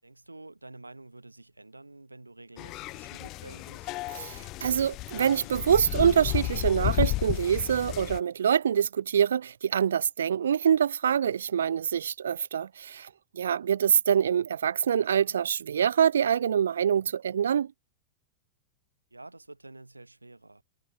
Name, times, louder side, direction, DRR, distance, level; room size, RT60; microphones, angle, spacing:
voice 1, 0.0-4.0 19.1-20.6, right 2 dB, 85° right, 7.4 m, -49 dB
sound 1, 2.6-8.2, left 19 dB, 40° left, 1.6 m, -33 dB
voice 2, 4.1-13.1 13.3-17.7, right 8 dB, 65° right, 1.3 m, -25 dB
figure-of-eight pair, 90°, 0 cm